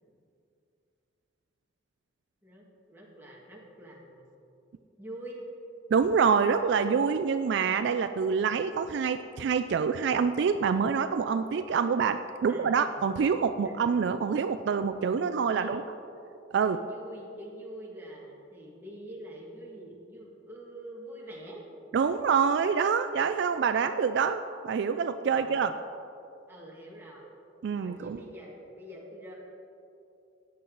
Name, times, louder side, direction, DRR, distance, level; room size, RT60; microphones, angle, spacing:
voice 1, 2.4-4.4 5.0-5.4 12.5-13.0 13.6-14.4 15.1-15.7 16.6-21.6 25.3-25.6 26.5-27.3 27.7-29.4, right 1 dB, 10° right, -4 dB, 1.9 m, -46 dB
voice 2, 5.9-15.8 16.5-16.8 21.9-25.7 27.6-28.2, right 6 dB, 65° right, 10 dB, 0.3 m, -26 dB
14.0 x 9.1 x 3.9 m, 2.7 s
head